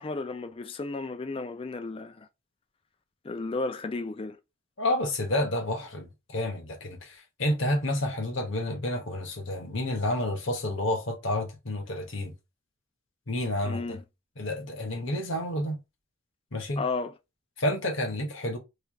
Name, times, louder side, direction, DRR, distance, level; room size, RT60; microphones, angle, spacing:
voice 1, 0.0-2.3 3.2-4.4 13.6-14.0 16.8-17.1, left 3 dB, 25° left, 0.3 m, -33 dB
voice 2, 4.8-12.3 13.3-14.0 14.4-15.8 16.5-16.8 17.6-18.6, left 1 dB, 60° left, 1.1 m, -30 dB
3.2 x 2.4 x 3.5 m
head